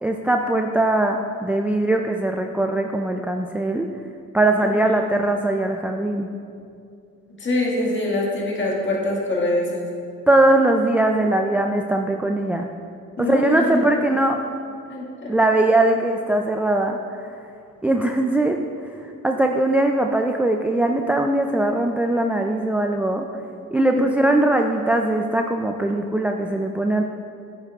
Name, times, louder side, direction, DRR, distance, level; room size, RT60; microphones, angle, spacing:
voice 1, 0.0-3.9 4.3-6.3 10.3-12.7 13.2-14.4 15.3-17.0 17.8-18.6 19.2-23.3 23.7-27.0, right 2 dB, 5° right, 3 dB, 0.3 m, -20 dB
voice 2, 7.4-9.8 13.2-13.8 14.9-15.3 24.0-24.1, left 2 dB, 40° left, -4 dB, 1.9 m, -24 dB
8.9 x 8.8 x 2.4 m, 2.5 s
cardioid pair, 90°, 30 cm